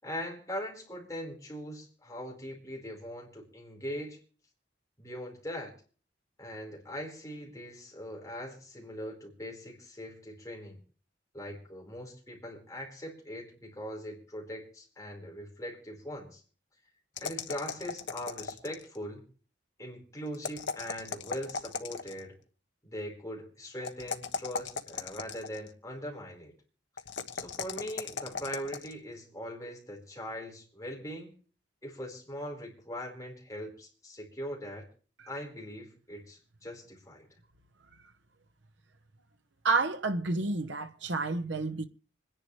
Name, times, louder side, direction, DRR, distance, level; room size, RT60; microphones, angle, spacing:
voice 1, 0.0-4.2 5.0-5.7 6.4-10.8 11.3-16.4 17.2-19.3 19.8-22.3 22.8-26.5 27.3-31.3 31.8-34.8 35.3-37.3, equal, 15° left, 4.6 m, -41 dB
sound 1, 17.2-19.0 20.3-22.3 23.8-25.7 27.0-28.9, left 5 dB, 85° left, 1.3 m, -37 dB
voice 2, 39.6-41.9, right 3 dB, 85° right, 1.1 m, -29 dB
26.0 x 10.5 x 3.3 m
head